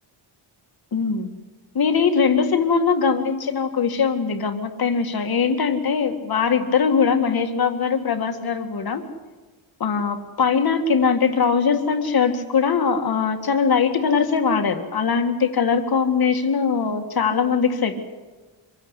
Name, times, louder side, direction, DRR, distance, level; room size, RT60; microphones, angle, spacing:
voice 1, 0.9-1.3 1.7-9.0 9.8-18.0, left 6 dB, 50° left, 6 dB, 2.0 m, -21 dB
25.0 x 16.5 x 8.3 m, 1.3 s
wide cardioid pair, 175°, 48 cm